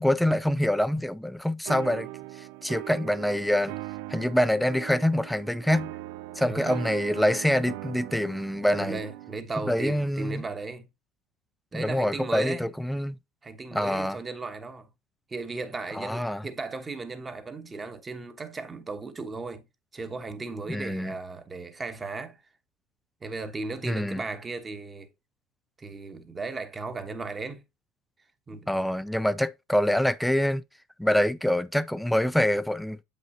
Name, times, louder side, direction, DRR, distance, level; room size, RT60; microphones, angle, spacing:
voice 1, 0.0-2.1 2.4-3.7 4.1-5.9 6.4-9.0 9.6-10.4 11.7-13.2 13.7-14.2 15.9-16.4 20.7-21.1 23.8-24.2 28.7-30.6 31.0-33.0, left 1 dB, ahead, 0.4 m, -25 dB
sound 1, 1.7-9.5, right 17 dB, 75° right, 0.4 m, -40 dB
voice 2, 6.4-6.8 8.7-10.9 11.7-12.7 13.4-14.9 15.3-19.6 19.9-22.4 23.2-25.1 25.8-27.6 28.5-28.7, right 3 dB, 20° right, 1.0 m, -36 dB
7.7 x 5.5 x 2.7 m
supercardioid pair, 125°, 0 cm